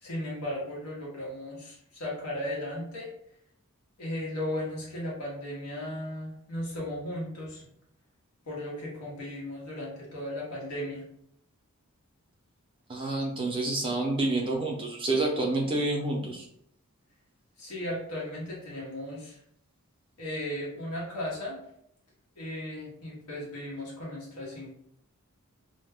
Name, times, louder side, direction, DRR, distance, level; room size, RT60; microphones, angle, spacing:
voice 1, 0.0-3.1 4.0-7.7 8.5-11.0 17.6-19.4 20.2-21.6 22.4-24.7, left 1 dB, 85° left, -4 dB, 1.0 m, -36 dB
voice 2, 12.9-16.5, right 2 dB, 25° right, -1 dB, 0.5 m, -28 dB
2.2 x 2.1 x 3.3 m, 0.71 s
head